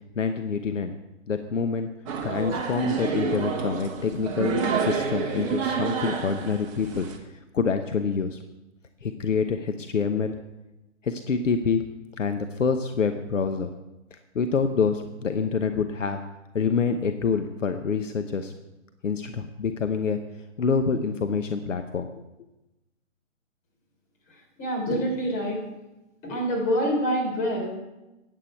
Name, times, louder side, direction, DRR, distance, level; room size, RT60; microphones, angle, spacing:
voice 1, 0.2-0.9 1.3-1.9 2.2-7.1 7.5-8.4 9.0-10.4 11.0-11.8 12.2-13.7 14.1-16.2 16.5-18.5 19.0-20.2 20.6-22.2, left 5 dB, 70° left, 7 dB, 1.0 m, -26 dB
sound 1, 2.1-7.2, right 5 dB, 25° right, 1.2 m, -28 dB
voice 2, 24.6-25.6 26.2-27.8, equal, 25° left, -1 dB, 4.0 m, -26 dB
13.5 x 9.7 x 4.5 m, 0.99 s
figure-of-eight pair, 135°, 39 cm